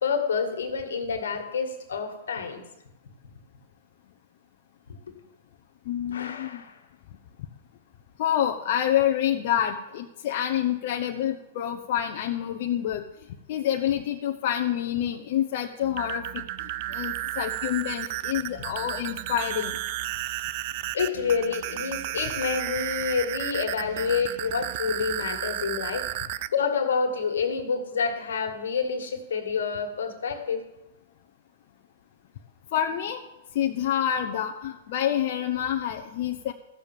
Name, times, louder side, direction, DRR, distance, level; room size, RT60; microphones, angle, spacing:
voice 1, 0.0-2.6 6.1-6.7 20.9-26.1 26.5-30.6, left 5 dB, 85° left, 5 dB, 2.0 m, -28 dB
voice 2, 5.9-6.6 8.2-13.0 13.5-16.4 16.9-19.7 32.7-33.2 33.5-36.5, left 10 dB, 55° left, 3 dB, 0.9 m, -27 dB
sound 1, 15.8-26.5, right 15 dB, 55° right, 0.5 m, -33 dB
14.5 x 6.8 x 7.4 m, 0.94 s
hypercardioid pair, 130°, 0 cm